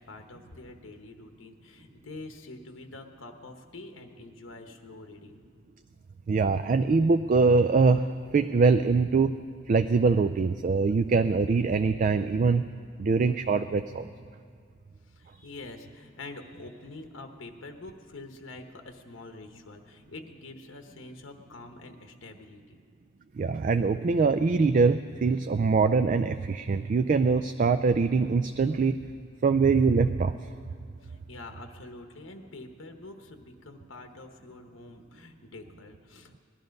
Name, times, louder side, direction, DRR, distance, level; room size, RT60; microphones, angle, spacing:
voice 1, 0.0-5.4 15.0-22.8 31.0-36.4, left 2 dB, 90° left, 5 dB, 1.0 m, -46 dB
voice 2, 6.3-8.1 8.3-9.3 9.7-12.7 13.0-14.1 23.4-29.0 29.4-30.4, right 4 dB, 40° right, 10 dB, 0.3 m, -23 dB
18.5 x 11.5 x 5.3 m, 2.2 s
head